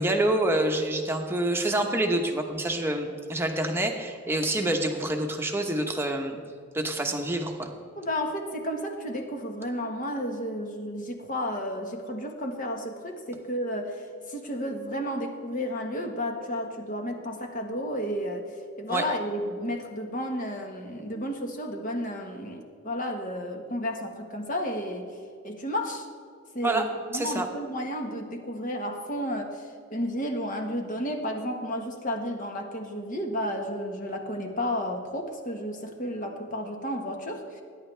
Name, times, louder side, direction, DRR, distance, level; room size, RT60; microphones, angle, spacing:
voice 1, 0.0-6.4 6.7-7.7 18.9-19.0 26.6-26.8 27.1-27.5, right 1 dB, 10° right, 3 dB, 1.0 m, -27 dB
voice 2, 8.0-18.5 18.8-25.1 25.4-26.1 26.5-37.6, equal, 40° left, 3 dB, 1.4 m, -32 dB
20.5 x 10.0 x 3.3 m, 2.2 s
head